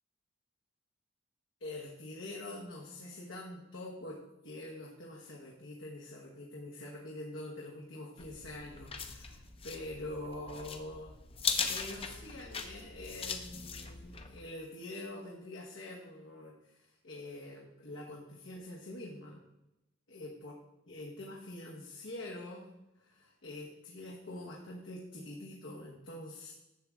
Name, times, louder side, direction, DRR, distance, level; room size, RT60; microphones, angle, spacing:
voice 1, 1.6-11.1 11.7-19.4 20.1-20.5 20.9-22.7 23.0-26.5, left 1 dB, 75° left, -2 dB, 1.3 m, -45 dB
sound 1, 8.2-14.4, left 5 dB, 30° left, 0.7 m, -39 dB
11.0 x 7.0 x 3.7 m, 0.92 s
head